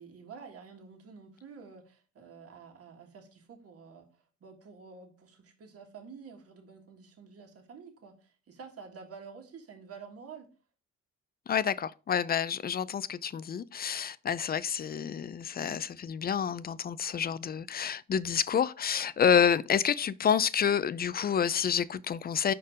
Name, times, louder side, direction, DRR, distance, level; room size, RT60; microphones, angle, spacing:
voice 1, 0.0-4.1 4.4-10.5, right 5 dB, 50° right, 1.7 m, -49 dB
voice 2, 11.5-22.5, left 8 dB, 30° left, 0.4 m, -28 dB
5.4 x 4.4 x 4.9 m
cardioid pair, 90°, 30 cm